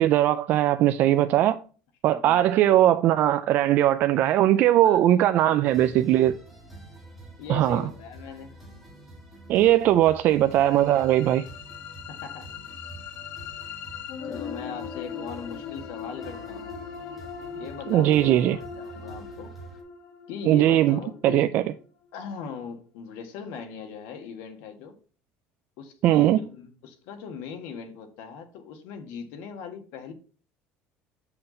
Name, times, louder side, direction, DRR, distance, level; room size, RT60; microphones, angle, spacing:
voice 1, 0.0-1.6 2.0-6.3 7.5-7.8 9.5-11.5 17.9-18.6 20.5-21.6 26.0-26.4, right 13 dB, 45° right, 0.3 m, -20 dB
voice 2, 2.0-2.4 4.8-6.2 7.4-8.6 12.1-12.5 14.2-16.8 17.5-19.5 20.3-21.5 22.1-24.9 25.8-30.1, left 6 dB, 75° left, 1.6 m, -40 dB
sound 1, 5.7-19.8, right 1 dB, 5° right, 2.0 m, -47 dB
sound 2, 10.3-22.3, left 6 dB, 50° left, 1.1 m, -40 dB
7.8 x 5.7 x 4.1 m
cardioid pair, 170°, 4 cm